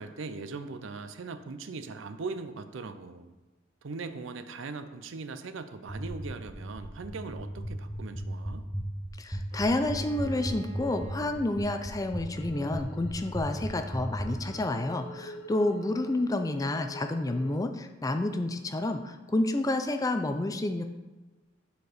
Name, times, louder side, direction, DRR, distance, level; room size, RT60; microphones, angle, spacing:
voice 1, 0.0-3.3 3.8-8.6, right 4 dB, 70° right, 10 dB, 0.5 m, -40 dB
sound 1, 5.9-14.3, equal, 5° right, 0.8 m, -35 dB
voice 2, 9.2-20.8, left 2 dB, 15° left, 7 dB, 0.4 m, -29 dB
Bowed string instrument, 9.5-13.2, right 5 dB, 25° right, 1.1 m, -50 dB
sound 2, 12.3-17.6, equal, 60° left, 0.7 m, -46 dB
6.6 x 4.6 x 4.9 m, 1.2 s
head